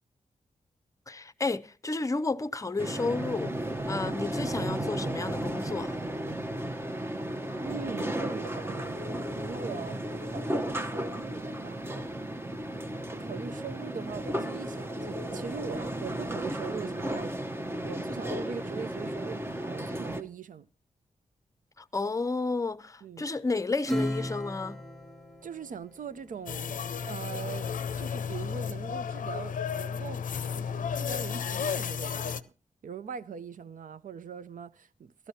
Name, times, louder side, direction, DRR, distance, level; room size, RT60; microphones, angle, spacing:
voice 1, 1.1-3.5 3.9-6.0 21.8-24.8, left 3 dB, 25° left, 0.6 m, -32 dB
sound 1, 2.8-20.2, right 1 dB, 15° right, 0.8 m, -34 dB
voice 2, 7.6-9.0 9.4-11.8 13.1-17.4 17.8-20.7 23.0-23.3 25.4-27.7 28.0-30.2 30.5-32.5 32.8-35.3, right 6 dB, 75° right, 0.6 m, -41 dB
Acoustic guitar / Strum, 23.8-26.7, equal, ahead, 1.3 m, -36 dB
sound 2, 26.5-32.4, left 7 dB, 75° left, 0.5 m, -33 dB
15.5 x 12.5 x 2.8 m
cardioid pair, 75°, 14 cm